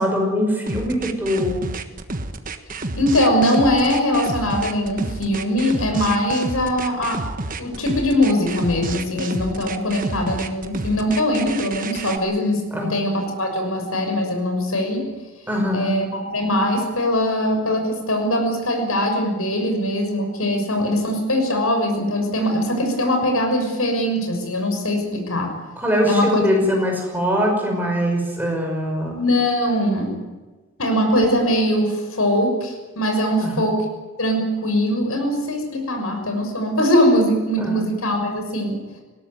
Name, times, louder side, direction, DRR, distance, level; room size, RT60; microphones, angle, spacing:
voice 1, 0.0-1.7 12.7-13.0 15.5-16.0 25.8-29.2 33.4-33.7 37.6-37.9, equal, 10° right, 1 dB, 5.6 m, -22 dB
sound 1, 0.7-12.2, right 2 dB, 40° right, 1.4 m, -30 dB
voice 2, 3.0-12.6 12.9-15.1 15.7-25.5 26.1-26.5 29.0-30.2 30.8-33.8 34.2-38.8, left 1 dB, 85° left, 4 dB, 6.4 m, -21 dB
20.0 x 17.5 x 9.5 m, 1.2 s
head